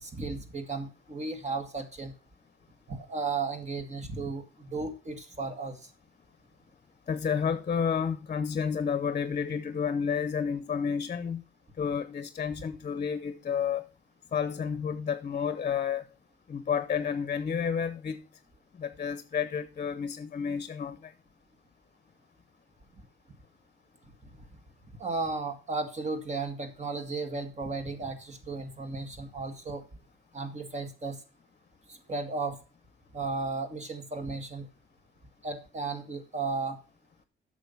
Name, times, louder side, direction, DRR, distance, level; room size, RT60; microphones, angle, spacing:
voice 1, 0.0-2.1 2.9-5.8 25.0-29.8 30.3-31.2 31.9-32.6 33.1-34.7 35.4-36.8, right 3 dB, 35° right, 1.8 m, -34 dB
voice 2, 7.1-11.4 11.8-13.9 14.3-16.0 16.5-18.2 18.8-21.1, left 7 dB, 40° left, 0.8 m, -30 dB
8.4 x 6.5 x 5.6 m
cardioid pair, 90°, 20 cm